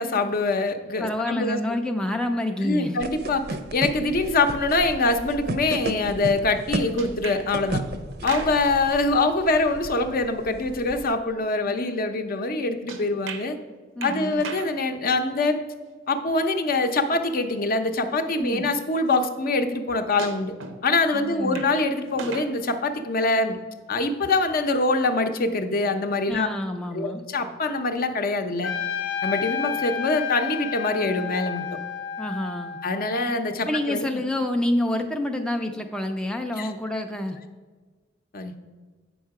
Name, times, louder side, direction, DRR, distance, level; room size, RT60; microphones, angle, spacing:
voice 1, 0.0-1.6 2.6-3.4 3.7-7.8 8.2-13.6 14.0-15.6 16.1-20.5 20.8-23.6 23.9-26.5 26.9-28.7 29.2-31.7 32.8-34.2 36.6-36.7 38.3-38.5, left 3 dB, 50° left, 7 dB, 0.6 m, -24 dB
voice 2, 1.0-3.0 14.0-14.4 18.4-18.7 21.1-21.6 26.3-27.2 32.2-32.8 33.7-37.4, left 1 dB, 5° left, 4 dB, 0.3 m, -27 dB
sound 1, 3.0-11.1, right 2 dB, 55° right, 0.6 m, -34 dB
sound 2, 7.0-7.5 8.1-8.8 12.9-13.5 14.0-14.8 16.6-16.7 17.9-18.0 20.2-20.8 21.3-21.7 22.1-22.5 23.2-23.3, right 4 dB, 90° right, 0.8 m, -37 dB
Trumpet, 28.6-33.3, left 8 dB, 85° left, 0.8 m, -31 dB
8.0 x 5.4 x 4.7 m, 1.4 s
head